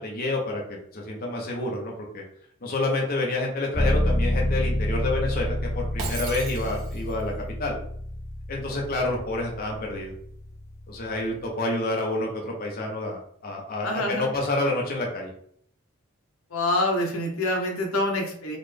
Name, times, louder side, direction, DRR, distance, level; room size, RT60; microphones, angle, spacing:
voice 1, 0.0-2.2 2.6-7.3 7.6-7.8 8.5-10.1 10.9-15.3, left 2 dB, 40° left, -1 dB, 0.7 m, -28 dB
sound 1, 3.7-11.5, left 1 dB, 15° left, 0.3 m, -29 dB
Shatter, 6.0-7.2, right 4 dB, 65° right, 0.8 m, -36 dB
voice 2, 13.8-14.3 16.5-18.6, left 1 dB, 70° left, 1 dB, 0.9 m, -26 dB
4.0 x 2.2 x 3.3 m, 0.64 s
head